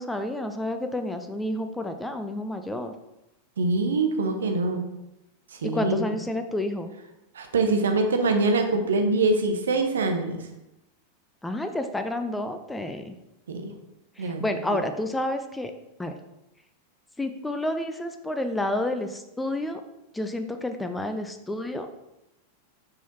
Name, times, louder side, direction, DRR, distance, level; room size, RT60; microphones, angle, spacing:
voice 1, 0.0-2.9 5.6-6.9 11.4-13.1 14.2-15.7 16.0-16.1 17.2-19.8 20.1-21.9, left 1 dB, 5° left, 7 dB, 0.5 m, -30 dB
voice 2, 3.6-4.9 5.6-6.0 7.3-10.4 13.5-13.7 14.2-14.8, right 3 dB, 65° right, 5 dB, 0.8 m, -24 dB
6.1 x 5.4 x 2.9 m, 0.91 s
figure-of-eight pair, 90°, 0 cm